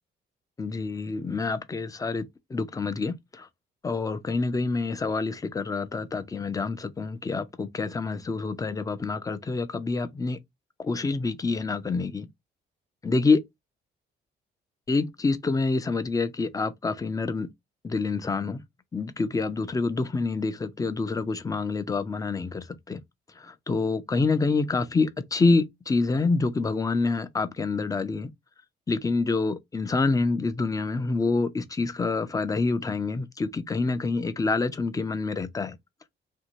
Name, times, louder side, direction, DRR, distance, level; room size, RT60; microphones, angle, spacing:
voice 1, 0.6-3.5 3.8-10.4 10.8-12.3 13.0-13.4 14.9-17.5 17.8-18.6 18.9-23.0 23.4-28.3 28.9-35.8, left 3 dB, 15° left, 0.5 m, -27 dB
2.6 x 2.6 x 2.9 m
cardioid pair, 90°, 20 cm